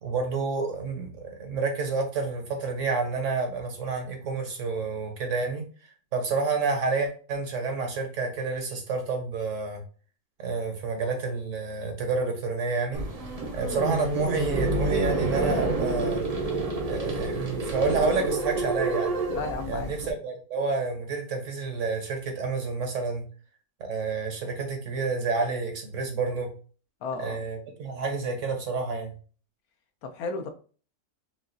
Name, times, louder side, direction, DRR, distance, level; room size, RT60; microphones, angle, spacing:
voice 1, 0.0-5.6 6.1-9.8 10.4-13.0 13.5-16.3 16.8-19.1 19.7-23.2 23.8-26.5 27.2-29.2, right 4 dB, 60° right, 3 dB, 1.2 m, -29 dB
sound 1, 12.9-20.1, right 2 dB, 40° right, 0.5 m, -28 dB
voice 2, 19.3-19.9 27.0-27.4 30.0-30.5, left 4 dB, 80° left, 7 dB, 1.1 m, -33 dB
5.7 x 2.4 x 2.6 m, 0.38 s
omnidirectional pair, 1.6 m